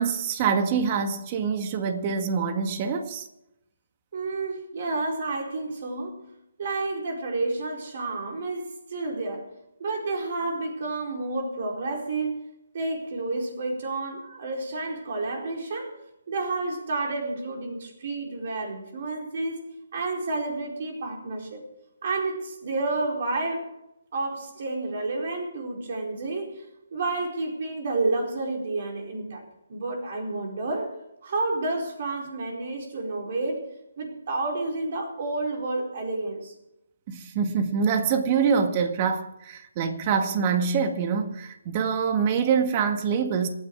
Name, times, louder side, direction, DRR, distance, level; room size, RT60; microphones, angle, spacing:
voice 1, 0.0-3.2 37.1-43.5, right 6 dB, 30° right, 1.8 m, -25 dB
voice 2, 4.1-6.2 6.6-9.4 9.8-12.4 12.7-15.9 16.3-21.6 22.0-23.7 24.1-26.6 26.9-29.4 29.7-33.6 34.0-36.5, right 2 dB, 50° right, 4.6 m, -30 dB
26.5 x 9.6 x 4.8 m
hypercardioid pair, 150°, 0 cm